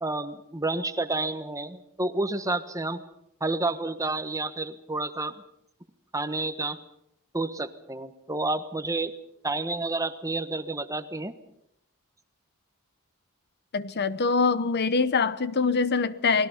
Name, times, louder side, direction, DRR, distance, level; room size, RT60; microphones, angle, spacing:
voice 1, 0.0-3.0 3.4-5.3 6.1-6.8 7.3-9.1 9.4-11.3, right 2 dB, 15° right, 1.2 m, -30 dB
voice 2, 13.7-16.5, left 4 dB, 50° left, 0.8 m, -24 dB
29.0 x 20.0 x 5.6 m
head